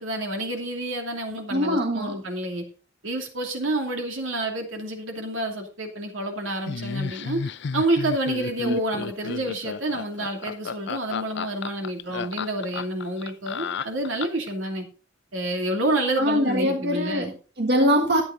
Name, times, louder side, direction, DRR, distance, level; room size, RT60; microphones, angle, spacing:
voice 1, 0.0-2.6 3.0-14.8 15.3-17.3, right 1 dB, 85° right, 2 dB, 2.7 m, -28 dB
voice 2, 1.5-2.2 8.6-8.8 16.2-18.2, equal, 60° right, 3 dB, 1.5 m, -23 dB
Laughter, 6.7-14.5, left 5 dB, 65° left, 0.5 m, -32 dB
12.0 x 8.7 x 3.9 m, 0.37 s
head